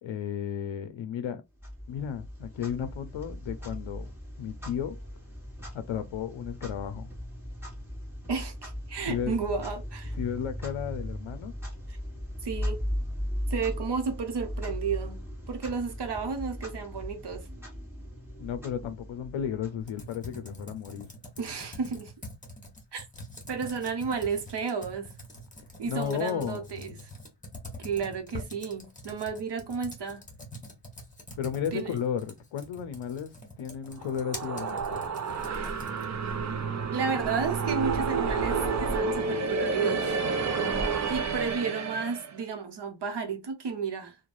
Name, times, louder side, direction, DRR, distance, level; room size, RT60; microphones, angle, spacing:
voice 1, 0.0-1.4 1.9-4.1 4.4-5.0 5.7-7.1 9.1-9.3 10.2-11.5 18.4-21.1 25.9-27.0 31.4-35.0, left 8 dB, 80° left, 0.5 m, -34 dB
Clock, 1.6-20.3, equal, 5° right, 1.1 m, -38 dB
voice 2, 8.3-10.1 11.9-12.0 12.4-12.8 13.5-15.2 15.5-17.5 21.4-22.1 22.9-23.1 23.5-25.1 25.8-27.0 27.8-30.2 31.7-31.9 36.9-40.2 41.1-44.2, right 5 dB, 60° right, 0.8 m, -32 dB
Computer keyboard, 19.8-36.2, left 1 dB, 15° left, 1.0 m, -45 dB
sound 1, 34.0-42.3, right 4 dB, 40° right, 0.4 m, -30 dB
3.1 x 2.2 x 2.5 m
wide cardioid pair, 130°, 46 cm